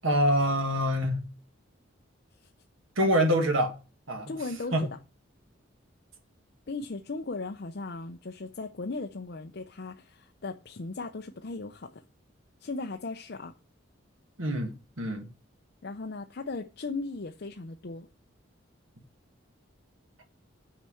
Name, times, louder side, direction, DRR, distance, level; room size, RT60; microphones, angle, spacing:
voice 1, 0.0-1.2 3.0-3.7 4.1-4.3 4.7-4.9 14.4-15.3, equal, 85° right, 1.8 m, -25 dB
voice 2, 4.3-5.0 6.7-11.9 12.6-13.5 15.8-18.1, left 3 dB, 55° left, 0.6 m, -37 dB
6.7 x 4.4 x 6.3 m
head